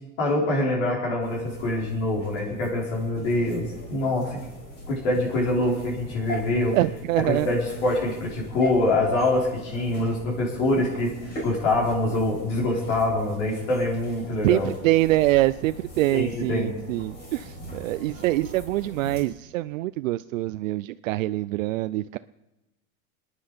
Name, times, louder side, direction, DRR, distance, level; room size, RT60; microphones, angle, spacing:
voice 1, 0.2-4.4 4.9-6.8 7.2-11.1 11.4-14.7 16.1-16.7, left 2 dB, 55° left, -3 dB, 5.2 m, -25 dB
sound 1, 1.2-19.2, equal, 25° left, 5.1 m, -40 dB
voice 2, 6.7-7.5 14.4-22.2, right 17 dB, 65° right, 14 dB, 0.5 m, -24 dB
25.5 x 10.0 x 5.2 m, 1.0 s
supercardioid pair, 170°, 42 cm